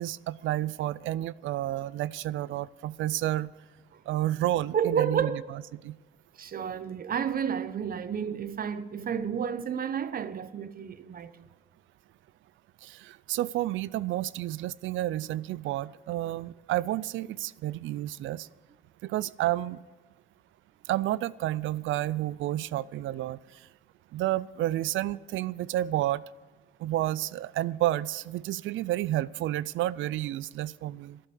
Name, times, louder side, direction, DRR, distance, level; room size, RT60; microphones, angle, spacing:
voice 1, 0.0-3.5 4.1-5.4 5.8-5.9 12.8-18.5 19.0-19.8 20.9-23.7 24.1-26.2 26.8-31.2, right 14 dB, 80° right, 0.4 m, -30 dB
voice 2, 4.7-5.4 6.4-11.5, right 8 dB, 45° right, 0.9 m, -31 dB
12.0 x 11.0 x 6.9 m
cardioid pair, 90°, 20 cm